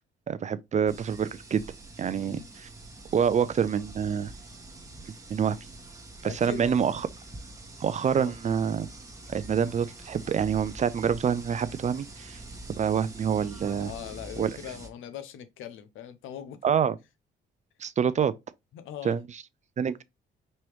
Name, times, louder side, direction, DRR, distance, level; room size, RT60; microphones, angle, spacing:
voice 1, 0.3-1.6 2.0-2.7 3.1-4.3 5.3-5.6 6.2-7.0 7.8-8.9 9.3-12.4 12.8-13.9 14.4-14.5 16.6-16.9 17.8-18.3 19.0-19.2 19.8-20.0, right 7 dB, 35° right, 0.4 m, -26 dB
sound 1, 0.9-14.9, right 2 dB, 15° right, 1.2 m, -45 dB
voice 2, 2.1-2.5 6.2-6.7 8.1-8.4 13.7-16.8 18.7-19.2, left 10 dB, 85° left, 0.8 m, -41 dB
5.4 x 2.9 x 3.1 m
cardioid pair, 90°, 20 cm